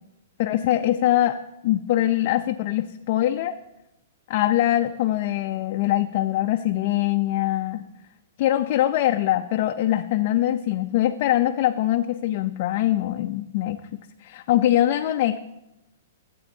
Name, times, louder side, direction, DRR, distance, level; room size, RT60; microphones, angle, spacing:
voice 1, 0.4-1.4 1.6-3.6 4.3-7.8 8.4-15.4, left 13 dB, 35° left, 6 dB, 0.3 m, -23 dB
15.5 x 8.3 x 2.7 m, 0.92 s
hypercardioid pair, 170°, 0 cm